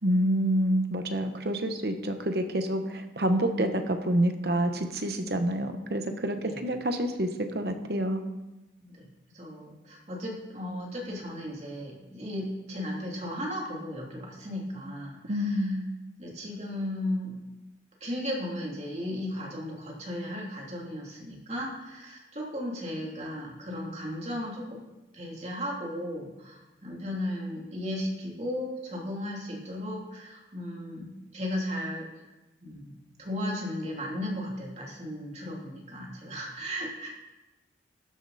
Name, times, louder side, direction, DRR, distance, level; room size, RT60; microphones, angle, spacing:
voice 1, 0.0-8.2 15.3-15.9, right 1 dB, 55° right, 6 dB, 1.1 m, -28 dB
voice 2, 9.3-15.7 16.2-17.4 18.0-24.8 25.1-32.2 32.6-32.9 33.2-37.1, left 1 dB, 35° right, -3 dB, 3.0 m, -35 dB
13.0 x 9.8 x 4.2 m, 1.0 s
head